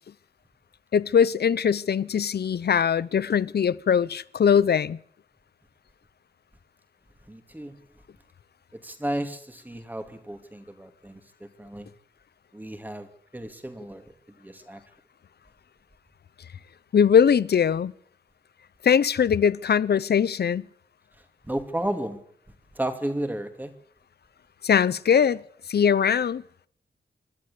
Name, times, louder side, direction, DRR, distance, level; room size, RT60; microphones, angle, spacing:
voice 1, 0.9-5.0 16.9-17.9 18.8-20.6 24.6-25.4 25.7-26.4, left 7 dB, 60° left, 0.8 m, -21 dB
voice 2, 7.3-7.8 8.7-11.9 12.5-13.1 13.3-14.0 14.4-14.8 21.5-22.2 22.7-23.7, right 1 dB, 10° right, 2.5 m, -33 dB
26.0 x 12.0 x 8.4 m
wide cardioid pair, 130°, 18 cm